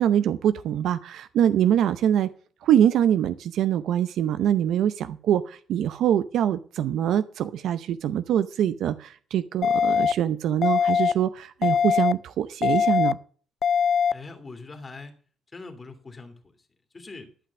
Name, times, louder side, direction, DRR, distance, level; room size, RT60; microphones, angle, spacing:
voice 1, 0.0-2.3 2.6-13.2, right 10 dB, 75° right, 12 dB, 0.6 m, -24 dB
sound 1, 9.6-10.1 10.6-11.1 11.6-12.1 12.6-13.1 13.6-14.1, left 7 dB, 60° left, 0.4 m, -21 dB
voice 2, 14.1-15.1 15.5-16.4 16.9-17.3, left 3 dB, 30° left, 6 dB, 2.6 m, -41 dB
12.0 x 5.8 x 7.3 m, 0.43 s
cardioid pair, 90°, 0 cm